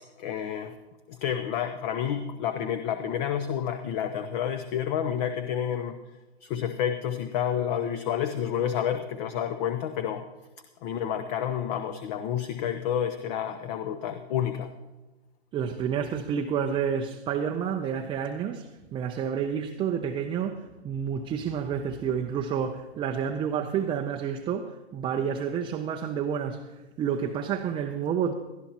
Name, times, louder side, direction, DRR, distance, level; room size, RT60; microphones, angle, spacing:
voice 1, 0.2-0.7 1.1-6.0 6.4-10.2 10.8-14.7, left 9 dB, 40° left, 0.8 m, -29 dB
voice 2, 15.5-18.7 18.9-26.6 27.0-28.3, right 7 dB, 15° right, 0.5 m, -29 dB
19.0 x 12.5 x 2.9 m
hypercardioid pair, 125°, 32 cm